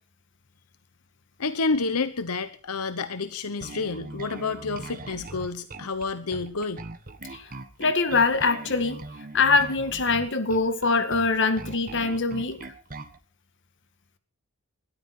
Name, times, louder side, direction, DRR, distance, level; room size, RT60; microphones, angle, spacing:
voice 1, 1.4-6.8, left 4 dB, 90° left, 1.0 m, -29 dB
Bass guitar, 3.6-13.2, right 2 dB, 40° right, 1.4 m, -40 dB
voice 2, 7.8-9.0 9.3-12.7, left 4 dB, 55° left, 1.9 m, -23 dB
21.0 x 13.0 x 4.4 m
head